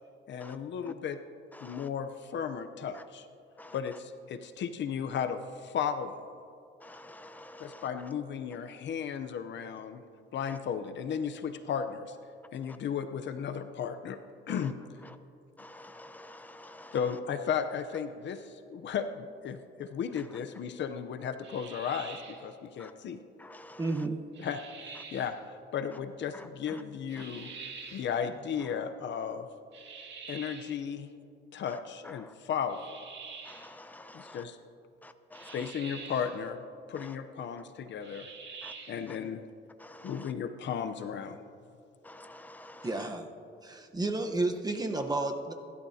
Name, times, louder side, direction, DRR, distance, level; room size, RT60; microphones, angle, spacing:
voice 1, 0.3-1.2 1.6-3.3 3.7-6.3 7.6-10.0 10.3-12.2 12.5-14.2 14.5-14.7 16.9-23.2 24.4-27.5 27.9-29.5 30.3-31.1 31.5-33.0 34.1-34.6 35.5-36.6 36.9-38.3 38.9-39.4 40.0-41.4, left 7 dB, 65° left, 8 dB, 0.8 m, -35 dB
voice 2, 6.8-7.8 15.6-16.9 22.8-22.9 23.4-23.8 33.4-34.4 35.0-35.5 38.6-38.7 39.8-40.1 42.0-42.9, left 1 dB, 10° left, 8 dB, 0.8 m, -49 dB
sound 1, 21.4-22.5 24.3-25.3 27.1-28.1 29.7-30.8 32.7-33.7 35.3-36.4 38.0-39.1, right 5 dB, 65° right, 2.0 m, -46 dB
voice 3, 23.8-24.2 42.8-43.3 43.6-45.5, right 2 dB, 20° right, 5 dB, 1.0 m, -31 dB
23.0 x 12.0 x 2.8 m, 2.5 s
cardioid pair, 90°, 20 cm